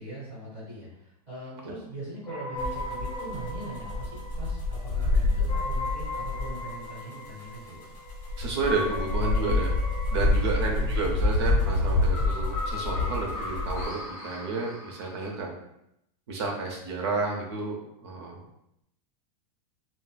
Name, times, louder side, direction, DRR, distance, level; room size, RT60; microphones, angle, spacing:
voice 1, 0.0-7.9 10.7-11.0, right 2 dB, 10° right, -11 dB, 1.4 m, -41 dB
sound 1, 2.3-15.3, left 2 dB, 15° left, 1.1 m, -38 dB
sound 2, 2.6-6.8 7.2-7.3 7.8-13.9, left 2 dB, 50° left, 1.2 m, -27 dB
voice 2, 8.4-9.7 10.1-15.6 16.3-18.4, right 3 dB, 45° right, 0 dB, 0.6 m, -31 dB
4.0 x 2.0 x 2.2 m, 0.79 s
supercardioid pair, 180°, 20 cm